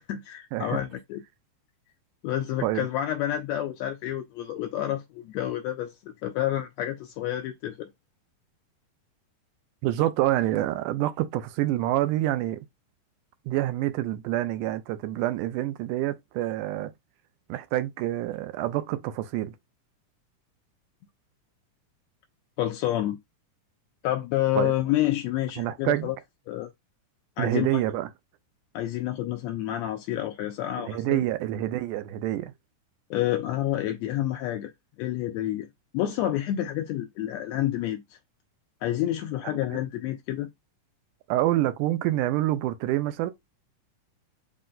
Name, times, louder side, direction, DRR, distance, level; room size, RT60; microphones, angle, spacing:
voice 1, 0.1-1.2 2.2-7.9 22.6-23.2 24.0-26.2 26.5-26.7 27.4-27.8 28.7-31.2 33.1-34.7 35.0-35.7 35.9-38.0 38.8-40.5, left 13 dB, 85° left, 1.5 m, -29 dB
voice 2, 9.8-12.6 13.5-16.9 17.5-19.6 24.6-24.7 25.6-26.1 27.4-28.1 30.8-32.5 39.7-39.8 41.3-43.3, right 14 dB, 90° right, 2.1 m, -27 dB
5.1 x 2.1 x 3.8 m
omnidirectional pair, 3.6 m